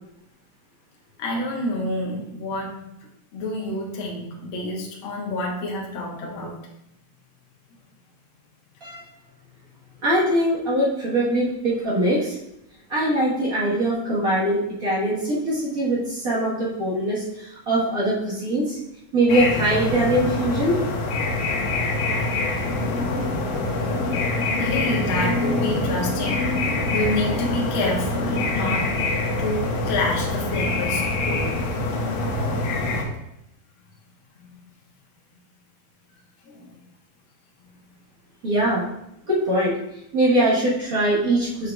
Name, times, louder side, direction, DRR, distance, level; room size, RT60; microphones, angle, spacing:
voice 1, 1.2-3.0 3.3-6.6 24.6-26.5 26.9-28.9 29.4-31.5 34.3-34.6 36.5-36.8, left 1 dB, 60° left, -2 dB, 1.3 m, -28 dB
voice 2, 10.0-12.4 12.9-18.8 19.1-20.8 38.4-38.9 39.3-39.8 40.1-41.7, right 1 dB, 80° right, -8 dB, 0.8 m, -22 dB
sound 1, 19.3-33.0, left 2 dB, 80° left, 2.6 m, -25 dB
6.7 x 6.6 x 2.3 m, 0.81 s
omnidirectional pair, 3.9 m